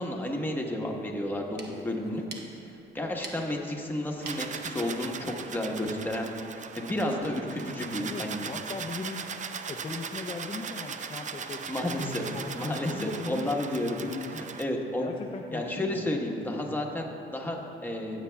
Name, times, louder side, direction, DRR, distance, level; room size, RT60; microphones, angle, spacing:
voice 1, 0.0-2.2 2.9-6.3 6.8-8.5 11.7-12.2 12.5-14.0 14.3-15.1 15.5-18.2, left 1 dB, 10° left, 0 dB, 1.2 m, -31 dB
sound 1, 1.3-6.6, right 4 dB, 55° right, 1.1 m, -49 dB
sound 2, 4.2-14.7, right 6 dB, 40° right, 0.5 m, -39 dB
voice 2, 8.0-9.3 9.7-11.7 12.0-13.7 14.0-14.4 15.0-16.6, left 4 dB, 25° left, 3 dB, 0.5 m, -39 dB
14.5 x 8.2 x 2.3 m, 3.0 s
cardioid pair, 90°, 20 cm